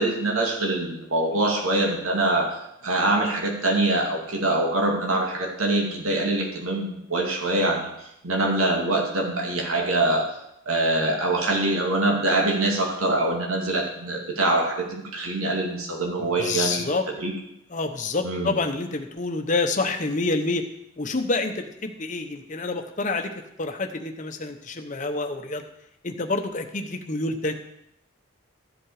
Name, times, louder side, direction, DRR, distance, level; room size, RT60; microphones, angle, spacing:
voice 1, 0.0-10.3 10.7-16.8 17.2-17.3 18.2-18.5, right 2 dB, 85° right, 0 dB, 2.5 m, -24 dB
voice 2, 16.2-17.1 17.7-20.7 21.0-25.7 26.0-27.5, left 3 dB, 35° left, 5 dB, 0.9 m, -28 dB
14.0 x 7.7 x 4.9 m, 0.81 s
head